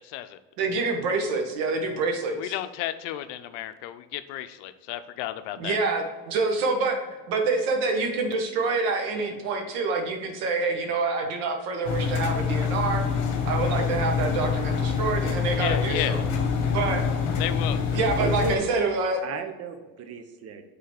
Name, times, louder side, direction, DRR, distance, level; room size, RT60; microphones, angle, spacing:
voice 1, 0.0-0.4 2.3-5.8 15.5-16.2 17.4-17.8, left 13 dB, 80° left, 12 dB, 0.6 m, -33 dB
voice 2, 0.6-2.5 5.6-7.0 7.3-13.0 13.4-16.2 16.7-17.0 17.9-19.2, right 3 dB, 80° right, 4 dB, 1.4 m, -26 dB
Engine, 11.8-18.6, left 6 dB, 50° left, 1.4 m, -26 dB
voice 3, 18.2-18.9 19.2-20.6, right 5 dB, 45° right, 8 dB, 0.8 m, -34 dB
5.6 x 4.0 x 4.9 m, 1.3 s
supercardioid pair, 110°, 36 cm